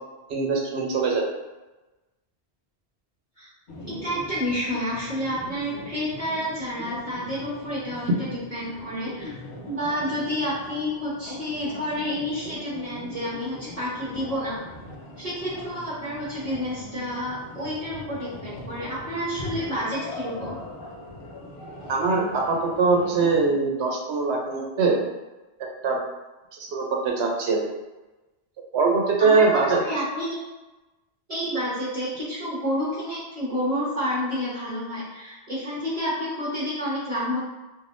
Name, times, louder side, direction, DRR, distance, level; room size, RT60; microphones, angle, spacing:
voice 1, 0.3-1.3 21.9-25.0 25.8-26.0 26.6-27.6 28.7-29.8, right 4 dB, 90° right, 0 dB, 0.9 m, -22 dB
sound 1, 3.7-23.5, left 2 dB, 60° left, 0.7 m, -40 dB
voice 2, 3.8-9.3 9.6-14.5 15.2-20.6 29.2-30.4 31.3-37.4, equal, 40° right, -12 dB, 1.0 m, -29 dB
3.3 x 2.6 x 2.5 m, 1.1 s
omnidirectional pair, 1.1 m